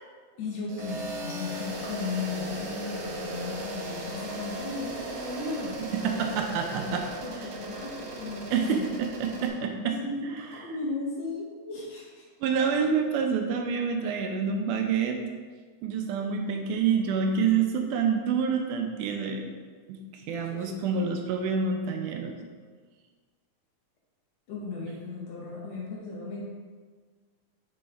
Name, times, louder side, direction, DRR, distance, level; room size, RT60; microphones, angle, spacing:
voice 1, 0.4-5.8 6.2-6.3 6.8-8.8 9.8-12.2 20.5-21.0 24.5-26.4, left 3 dB, 65° left, -4 dB, 1.9 m, -36 dB
sound 1, 0.7-9.5, right 1 dB, 65° right, 1.7 m, -37 dB
voice 2, 5.8-7.5 8.5-10.0 10.2-10.7 12.4-15.2 15.8-19.5 19.9-22.3, right 6 dB, 80° right, 3 dB, 2.0 m, -28 dB
5.4 x 5.2 x 3.4 m, 1.5 s
omnidirectional pair, 3.7 m